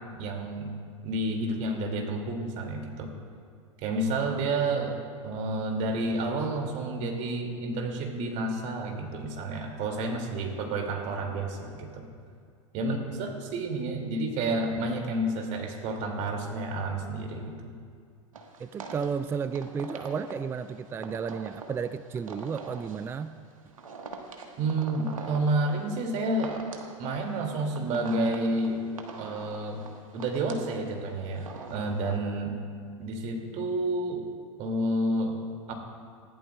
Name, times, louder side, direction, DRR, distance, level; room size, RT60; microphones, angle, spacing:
voice 1, 0.1-3.1 3.8-12.1 12.7-17.7 24.6-26.6 27.0-28.8 29.2-29.8 30.1-32.6 33.0-34.2 34.6-35.7, right 2 dB, 45° right, 2 dB, 2.4 m, -30 dB
sound 1, 18.3-32.2, right 4 dB, 90° right, 1.4 m, -44 dB
voice 2, 18.6-23.3, right 6 dB, 15° right, 13 dB, 0.3 m, -33 dB
20.5 x 14.0 x 2.3 m, 2.2 s
hypercardioid pair, 100°, 17 cm